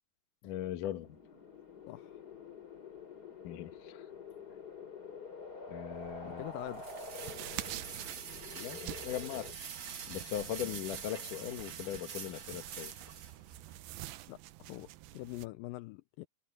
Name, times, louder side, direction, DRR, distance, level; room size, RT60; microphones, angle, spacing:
voice 1, 0.4-1.2 3.4-4.1 5.7-6.4 8.5-12.9, left 11 dB, 65° left, 2.6 m, -40 dB
sound 1, 0.7-9.5, left 4 dB, 25° left, 4.8 m, -48 dB
voice 2, 1.9-2.2 6.2-6.9 14.3-14.4 14.7-16.3, left 19 dB, 80° left, 2.0 m, -44 dB
sound 2, 5.9-13.8, right 7 dB, 50° right, 3.0 m, -46 dB
sound 3, 7.2-15.5, right 16 dB, 80° right, 2.5 m, -47 dB
omnidirectional pair, 4.4 m